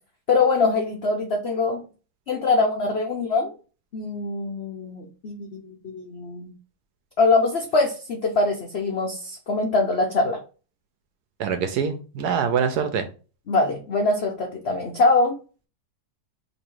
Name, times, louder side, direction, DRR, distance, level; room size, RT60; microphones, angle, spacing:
voice 1, 0.3-1.8 2.3-3.5 3.9-6.5 7.2-10.4 13.5-15.4, left 3 dB, 85° left, 1 dB, 0.5 m, -23 dB
voice 2, 11.4-13.1, right 7 dB, 70° right, 8 dB, 1.0 m, -24 dB
3.0 x 2.7 x 4.5 m, 0.35 s
omnidirectional pair, 2.0 m